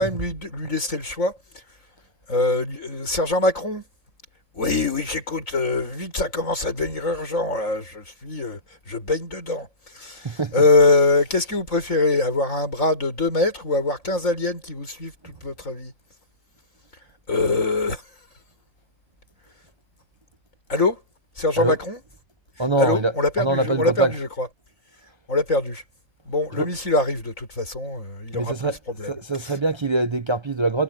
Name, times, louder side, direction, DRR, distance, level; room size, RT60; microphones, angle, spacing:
voice 1, 0.0-1.4 2.3-3.8 4.5-8.6 8.9-9.7 9.9-15.9 17.3-18.0 20.7-21.0 21.4-22.0 22.8-24.5 25.3-25.8 26.3-28.5 28.9-29.1 29.4-29.6, left 2 dB, 80° left, 6.3 m, -23 dB
voice 2, 22.6-23.1 23.4-24.1 26.6-26.7 28.3-28.8 29.0-30.8, right 2 dB, 30° right, 0.6 m, -23 dB
omnidirectional pair, 1.3 m